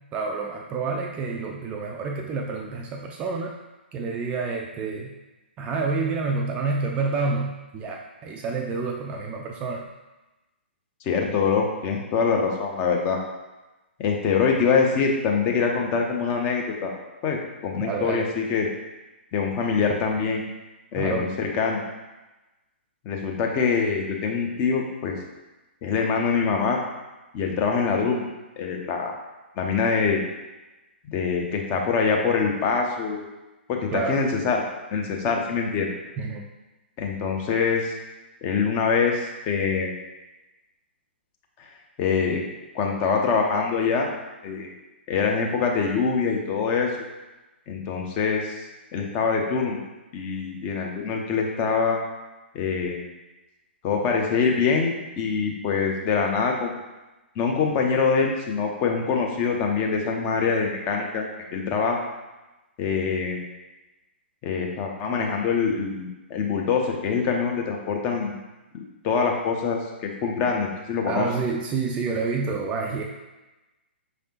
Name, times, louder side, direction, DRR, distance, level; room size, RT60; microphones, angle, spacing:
voice 1, 0.1-3.5 3.9-5.1 5.6-9.9 17.8-18.3 21.0-21.3 33.9-34.2 36.2-36.5 71.1-73.0, right 4 dB, 20° right, 1 dB, 0.3 m, -28 dB
voice 2, 11.0-13.2 14.0-16.9 17.2-18.7 19.3-20.4 20.9-21.8 23.0-25.2 25.8-26.8 27.3-28.3 28.6-29.1 29.6-30.2 31.1-33.2 33.7-34.6 34.9-35.9 37.0-37.9 38.4-39.9 41.6-41.7 42.0-42.4 42.7-44.1 44.4-44.7 45.1-46.9 47.7-48.5 48.9-49.8 50.1-52.0 52.5-53.0 53.8-56.8 57.4-62.0 62.8-63.5 64.4-68.4 68.7-71.3, left 5 dB, 25° left, 1 dB, 0.6 m, -24 dB
5.2 x 3.3 x 2.8 m, 1.1 s
figure-of-eight pair, 120°, 6 cm